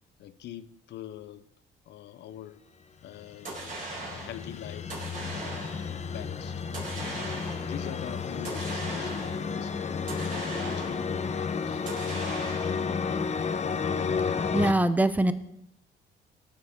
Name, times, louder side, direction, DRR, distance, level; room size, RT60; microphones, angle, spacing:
voice 1, 0.2-1.5 1.9-2.6 3.0-5.0 5.4-6.6 7.1-9.9 10.3-12.2, left 11 dB, 70° left, 15 dB, 0.7 m, -44 dB
sound 1, 3.2-14.7, left 5 dB, 40° left, 0.9 m, -32 dB
sound 2, 3.4-4.4 4.9-5.9 6.7-7.8 8.4-9.5 10.1-11.2 11.9-12.9, right 2 dB, 45° right, 4.5 m, -39 dB
voice 2, 14.5-15.3, right 1 dB, 10° right, 12 dB, 0.8 m, -23 dB
16.0 x 6.9 x 3.6 m, 0.80 s
cardioid pair, 85°, 18 cm